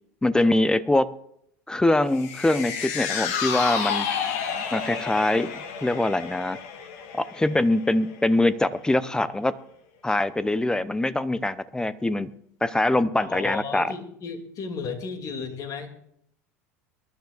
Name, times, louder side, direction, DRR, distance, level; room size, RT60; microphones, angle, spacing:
voice 1, 0.2-1.1 1.7-4.1 4.7-6.6 7.1-9.5 10.0-12.3 12.6-13.9, left 1 dB, 10° left, 16 dB, 0.7 m, -23 dB
sound 1, 2.1-8.6 8.9-9.0, left 7 dB, 65° left, 1.9 m, -31 dB
voice 2, 13.2-15.9, left 5 dB, 45° left, 6 dB, 2.5 m, -34 dB
22.5 x 11.5 x 2.5 m, 0.71 s
hypercardioid pair, 80°, 8 cm